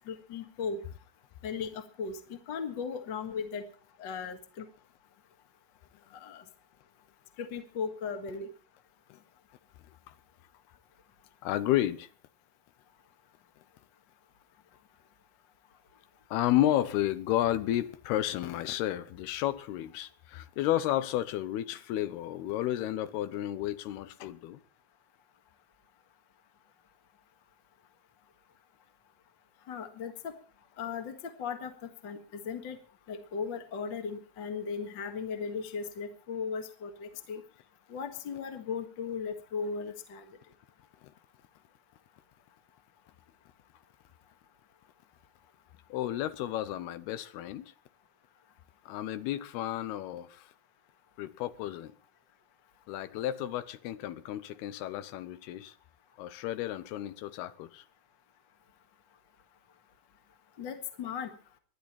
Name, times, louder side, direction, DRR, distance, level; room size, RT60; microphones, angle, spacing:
voice 1, 0.1-0.8 1.4-3.6 4.0-4.7 6.1-6.4 7.4-8.5 29.7-30.3 30.8-32.8 33.1-37.4 37.9-40.2 60.6-61.3, left 6 dB, 50° left, 1.5 m, -37 dB
voice 2, 11.4-12.1 16.3-24.6 45.9-47.7 48.9-50.5 51.2-51.9 52.9-55.7 56.2-57.8, left 13 dB, 85° left, 2.9 m, -32 dB
24.0 x 10.5 x 4.4 m
omnidirectional pair, 4.5 m